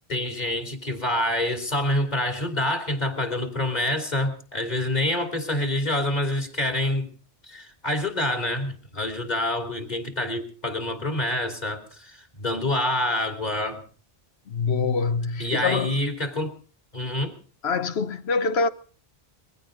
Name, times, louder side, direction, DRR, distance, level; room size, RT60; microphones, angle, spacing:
voice 1, 0.1-7.1 7.4-13.8 15.4-16.5 16.9-17.3, left 1 dB, 40° left, 3.1 m, -27 dB
voice 2, 14.5-15.9 17.6-18.7, left 4 dB, 80° left, 1.2 m, -25 dB
22.0 x 16.0 x 3.8 m
omnidirectional pair, 1.0 m